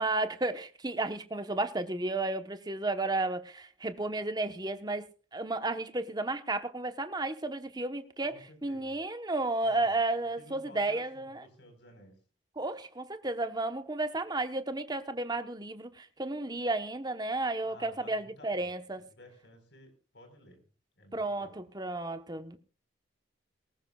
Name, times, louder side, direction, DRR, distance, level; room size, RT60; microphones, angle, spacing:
voice 1, 0.0-5.1 5.3-11.4 12.6-19.0 21.1-22.6, right 2 dB, 20° right, 1.1 m, -33 dB
voice 2, 8.2-9.0 9.6-12.2 17.6-20.6 21.0-21.6, left 1 dB, 65° left, 4.6 m, -55 dB
19.5 x 18.0 x 2.4 m
head